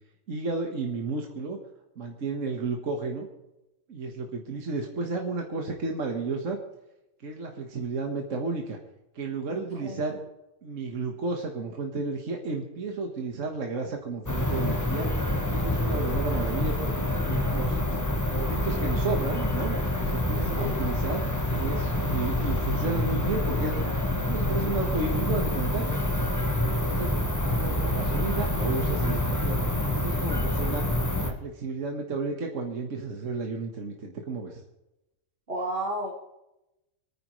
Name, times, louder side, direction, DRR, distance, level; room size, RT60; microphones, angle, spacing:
voice 1, 0.3-1.6 2.0-3.3 3.9-6.6 7.2-8.8 9.2-10.2 10.6-15.1 15.5-17.8 18.3-21.2 21.5-23.8 24.2-25.9 26.6-27.2 27.5-31.0 31.2-34.6, right 3 dB, 75° right, 1 dB, 1.7 m, -32 dB
voice 2, 9.5-10.0 20.6-20.8 35.5-36.1, right 1 dB, 50° right, -6 dB, 2.5 m, -32 dB
sound 1, 14.3-31.3, left 1 dB, 15° left, 1.1 m, -27 dB
28.5 x 9.7 x 3.2 m, 0.94 s
omnidirectional pair, 1.3 m